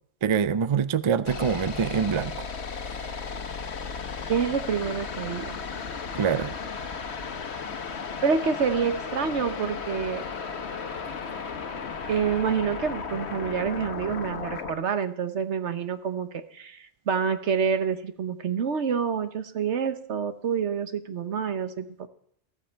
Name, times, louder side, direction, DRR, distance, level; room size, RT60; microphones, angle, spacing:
voice 1, 0.2-2.5 2.7-3.1 6.1-6.6, right 7 dB, 40° right, 14 dB, 0.4 m, -25 dB
sound 1, 1.3-14.7, left 5 dB, 70° left, 1.3 m, -35 dB
voice 2, 4.3-5.6 8.2-10.2 12.1-21.9, right 6 dB, 85° right, 9 dB, 1.3 m, -27 dB
14.5 x 14.0 x 4.5 m, 0.67 s
omnidirectional pair, 1.1 m